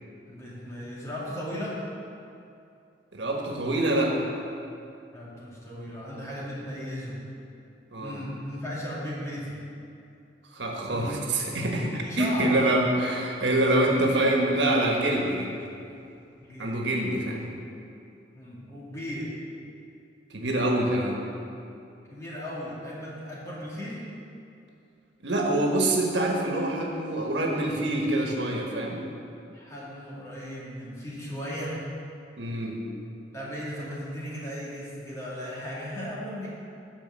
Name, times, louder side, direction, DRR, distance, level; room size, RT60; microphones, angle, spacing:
voice 1, 0.3-1.8 5.1-7.2 8.0-9.6 10.9-11.2 12.0-12.5 16.4-17.3 18.3-19.3 22.1-24.0 29.5-31.8 33.3-36.5, equal, 20° left, -7 dB, 2.4 m, -36 dB
voice 2, 3.1-4.1 7.9-8.2 10.5-15.6 16.6-17.5 20.3-21.2 25.2-29.0 32.4-32.8, right 1 dB, 85° right, -1 dB, 1.4 m, -25 dB
9.5 x 5.0 x 7.7 m, 2.6 s
head